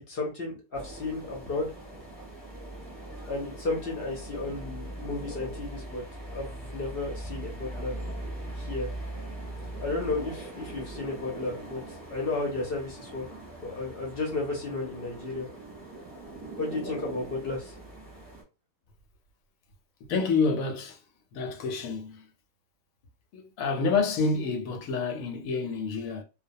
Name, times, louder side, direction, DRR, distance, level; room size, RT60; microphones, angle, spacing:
voice 1, 0.0-1.7 3.3-6.0 6.3-7.9 8.6-8.9 9.8-13.3 13.6-15.5 16.6-17.7, left 3 dB, 55° left, 0.7 m, -33 dB
sound 1, 0.7-18.4, right 1 dB, 15° right, 0.8 m, -41 dB
voice 2, 20.1-21.0 21.3-22.3 23.3-26.2, left 4 dB, 80° left, 1.0 m, -28 dB
2.2 x 2.2 x 2.6 m
omnidirectional pair, 1.5 m